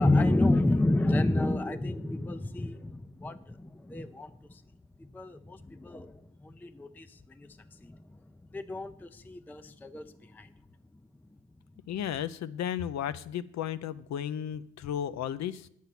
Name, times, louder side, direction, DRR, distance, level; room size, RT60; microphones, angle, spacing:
voice 1, 0.0-4.6 5.0-8.2 8.5-10.5, left 2 dB, 5° left, 11 dB, 0.4 m, -30 dB
voice 2, 11.9-15.7, left 10 dB, 65° left, 15 dB, 0.6 m, -34 dB
9.2 x 7.4 x 5.9 m, 0.74 s
cardioid pair, 90°, 30 cm